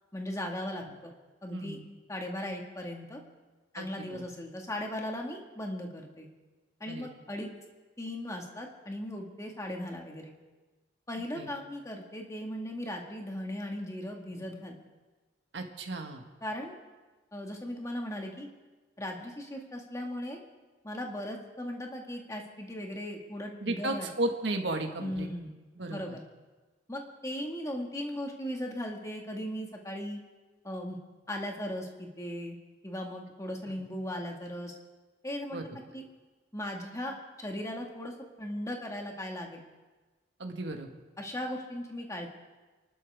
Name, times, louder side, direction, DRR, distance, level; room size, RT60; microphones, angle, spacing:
voice 1, 0.1-1.1 1.4-1.8 2.1-3.2 3.7-6.3 6.8-7.5 8.0-10.3 11.1-14.8 16.4-16.7 17.3-18.5 19.0-20.4 20.8-24.1 25.0-25.5 25.9-26.2 26.9-30.2 30.6-31.0 31.3-32.6 32.8-34.7 35.2-35.6 35.9-36.0 36.5-39.6 41.2-42.3, left 1 dB, 15° left, 1 dB, 1.8 m, -37 dB
voice 2, 1.5-1.8 3.7-4.2 6.9-7.1 11.4-11.5 15.5-16.2 23.6-25.3 25.8-26.0 33.7-33.8 35.5-35.6 40.4-40.9, right 2 dB, 70° right, 3 dB, 1.7 m, -34 dB
29.5 x 12.0 x 3.6 m, 1.2 s
head